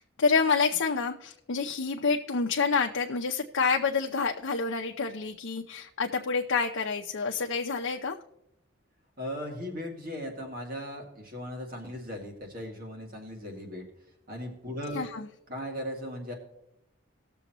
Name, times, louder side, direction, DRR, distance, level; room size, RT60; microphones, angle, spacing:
voice 1, 0.0-8.2 14.9-15.3, left 5 dB, 80° left, 1 dB, 0.6 m, -28 dB
voice 2, 9.2-13.8 14.3-15.0 15.5-16.3, equal, 45° right, 1 dB, 2.3 m, -37 dB
19.5 x 7.0 x 3.0 m, 0.79 s
head